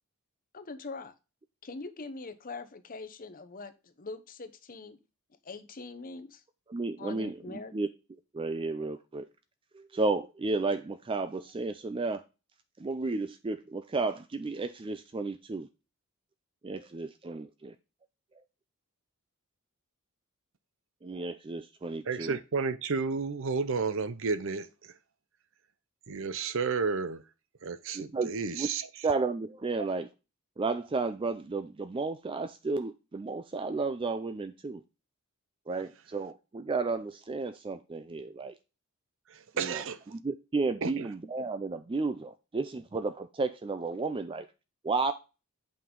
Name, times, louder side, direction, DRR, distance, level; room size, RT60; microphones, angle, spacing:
voice 1, 0.5-1.1 1.6-5.0 5.4-6.4 7.0-7.8, left 3 dB, 40° left, 0.7 m, -43 dB
voice 2, 6.7-7.9 8.3-9.3 9.7-12.2 12.8-15.7 16.6-17.8 21.0-22.4 27.9-28.7 29.0-30.1 30.6-34.8 35.7-38.5 39.5-44.5 44.8-45.1, right 3 dB, 25° right, 0.3 m, -33 dB
voice 3, 22.1-24.9 26.1-27.2 27.6-28.8 29.8-29.9 39.3-40.0 40.8-41.1, right 4 dB, 60° right, 0.6 m, -32 dB
8.4 x 5.2 x 3.7 m
head